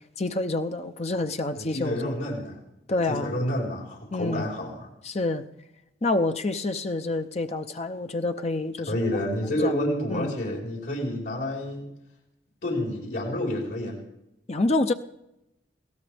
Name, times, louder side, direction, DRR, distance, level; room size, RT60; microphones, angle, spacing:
voice 1, 0.2-2.1 2.9-3.3 4.1-4.5 5.0-5.4 6.0-8.9 9.6-9.7 10.1-10.4 14.5-14.9, left 2 dB, 35° left, 7 dB, 0.7 m, -27 dB
voice 2, 1.6-2.6 2.9-4.9 8.9-11.8 12.6-14.0, left 1 dB, 75° left, -2 dB, 4.3 m, -29 dB
23.5 x 17.5 x 3.5 m, 0.87 s
head